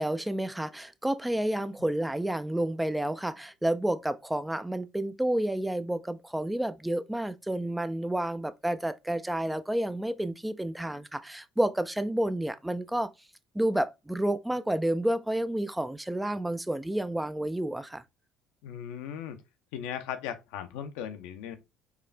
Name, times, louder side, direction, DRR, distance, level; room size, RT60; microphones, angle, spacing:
voice 1, 0.0-13.1 13.5-18.0, right 1 dB, 5° right, 0.4 m, -30 dB
voice 2, 18.6-19.4 19.7-21.6, left 9 dB, 70° left, 0.6 m, -37 dB
4.7 x 2.4 x 3.2 m
hypercardioid pair, 60°, 0 cm